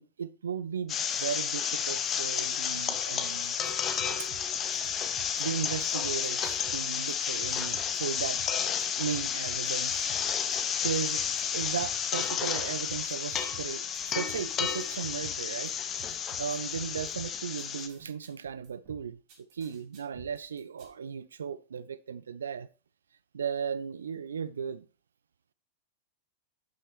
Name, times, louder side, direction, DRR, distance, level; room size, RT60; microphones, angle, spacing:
voice 1, 0.0-3.6 4.2-4.3 5.4-8.4 9.0-10.1 10.8-11.2 11.5-15.7 16.4-22.7 23.3-24.8, right 7 dB, 70° right, 0.3 m, -36 dB
sound 1, 0.9-17.9, left 8 dB, 30° left, 0.8 m, -31 dB
sound 2, 3.4-20.9, right 6 dB, 45° right, 3.5 m, -52 dB
11.0 x 5.9 x 3.0 m
figure-of-eight pair, 90°, 0 cm